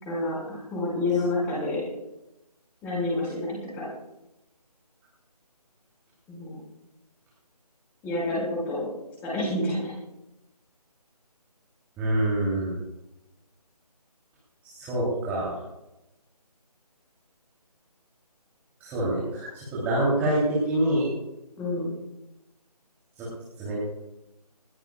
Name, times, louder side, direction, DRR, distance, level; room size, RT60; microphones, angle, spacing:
voice 1, 0.0-1.8 2.8-3.9 6.3-6.6 8.0-8.9 9.2-9.9 21.6-21.9, left 2 dB, 10° left, -5 dB, 5.9 m, -28 dB
voice 2, 12.0-12.7 14.6-15.6 18.8-21.1 23.2-23.3 23.6-23.8, right 1 dB, 10° right, -8 dB, 3.4 m, -26 dB
20.5 x 20.0 x 2.4 m, 0.93 s
figure-of-eight pair, 160°, 21 cm